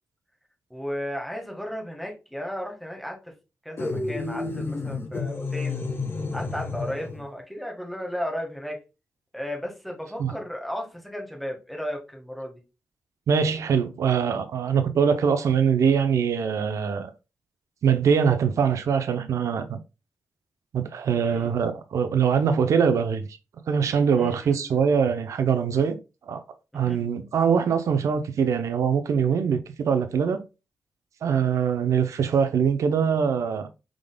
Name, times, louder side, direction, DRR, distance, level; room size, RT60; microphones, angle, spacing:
voice 1, 0.7-3.3 3.6-5.8 6.3-8.8 9.3-12.6 21.3-21.5 24.2-24.8 26.7-27.2, equal, ahead, 1.6 m, -34 dB
sound 1, 3.8-7.3, left 3 dB, 45° left, 1.1 m, -30 dB
voice 2, 13.3-17.1 17.8-19.8 20.7-23.3 23.7-26.0 26.3-26.4 26.7-30.4 31.2-33.7, right 7 dB, 75° right, 0.6 m, -23 dB
5.0 x 3.8 x 2.3 m
cardioid pair, 75°, 5 cm